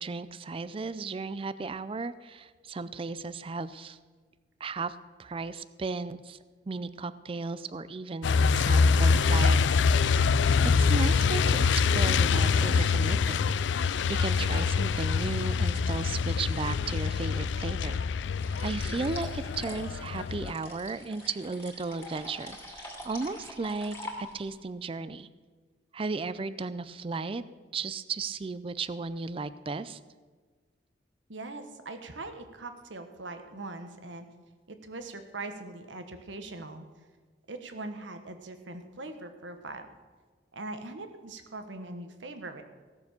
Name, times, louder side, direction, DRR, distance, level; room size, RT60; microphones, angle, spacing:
voice 1, 0.0-4.0 4.6-6.4 6.7-10.1 10.6-18.0 18.6-25.3 25.9-27.4 27.7-30.0, right 4 dB, 30° right, 15 dB, 0.4 m, -35 dB
Truck, 8.2-20.5, left 5 dB, 75° left, 0.4 m, -25 dB
sound 1, 18.4-24.6, left 1 dB, 15° left, 2.5 m, -44 dB
voice 2, 31.3-34.3 34.7-36.9 37.5-39.9 40.5-42.6, right 2 dB, 85° right, 7 dB, 1.3 m, -41 dB
16.5 x 7.0 x 6.8 m, 1.5 s
head